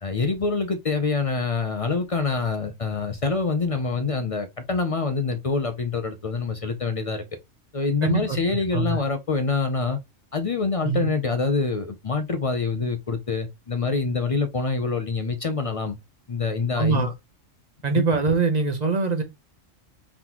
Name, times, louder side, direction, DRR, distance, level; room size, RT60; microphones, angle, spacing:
voice 1, 0.0-7.2 7.7-10.0 10.3-16.0 16.3-17.1 17.9-18.0, left 4 dB, 50° left, 0.4 m, -26 dB
voice 2, 8.0-8.4 8.7-9.0 10.8-11.1 16.7-17.1 17.8-19.2, right 4 dB, 40° right, 0.7 m, -23 dB
3.9 x 3.6 x 2.9 m
omnidirectional pair, 1.3 m